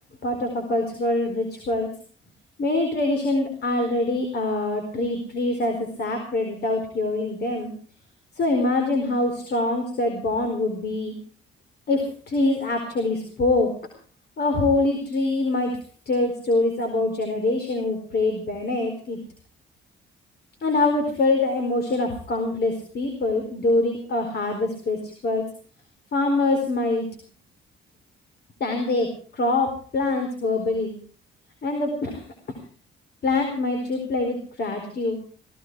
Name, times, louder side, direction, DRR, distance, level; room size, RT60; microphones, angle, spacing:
voice 1, 0.2-1.9 2.6-7.7 8.4-11.1 11.9-13.7 14.4-15.8 16.1-19.2 20.6-25.4 26.1-27.1 28.6-31.0 31.6-32.2 33.2-35.2, left 2 dB, 55° left, 4 dB, 4.4 m, -24 dB
17.0 x 16.5 x 4.8 m, 0.42 s
cardioid pair, 90°, 20 cm